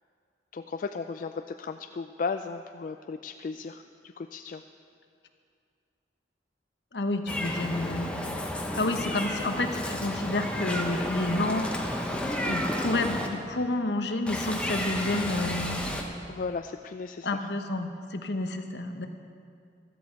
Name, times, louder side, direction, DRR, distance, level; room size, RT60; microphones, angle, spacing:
voice 1, 0.5-3.8 4.2-4.6 16.3-17.5, left 4 dB, 50° left, 7 dB, 0.3 m, -35 dB
voice 2, 6.9-8.2 8.8-11.7 12.4-15.8 17.2-19.1, left 2 dB, 70° left, 6 dB, 1.1 m, -29 dB
Meow, 7.3-13.3 14.3-16.0, left 1 dB, 5° left, 1.1 m, -32 dB
15.5 x 13.0 x 4.6 m, 2.3 s
head